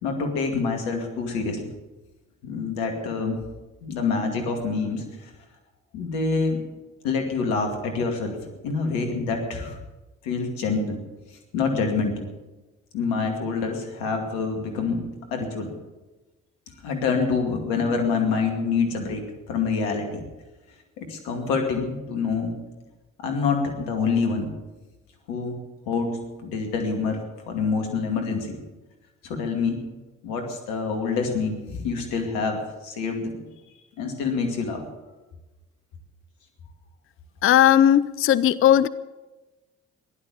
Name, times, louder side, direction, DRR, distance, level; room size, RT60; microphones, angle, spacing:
voice 1, 0.0-1.7 2.4-3.4 3.8-5.3 5.9-6.6 7.0-8.4 8.6-9.8 10.2-11.0 11.5-12.3 12.9-15.7 16.8-20.2 21.0-22.6 23.2-24.5 25.3-25.6 25.9-27.2 27.5-28.6 29.2-29.8 30.2-33.4 34.0-34.8, left 4 dB, 80° left, 3 dB, 2.4 m, -26 dB
voice 2, 37.4-38.9, left 10 dB, 35° left, 17 dB, 0.5 m, -17 dB
15.5 x 11.5 x 7.0 m, 1.1 s
hypercardioid pair, 45°, 36 cm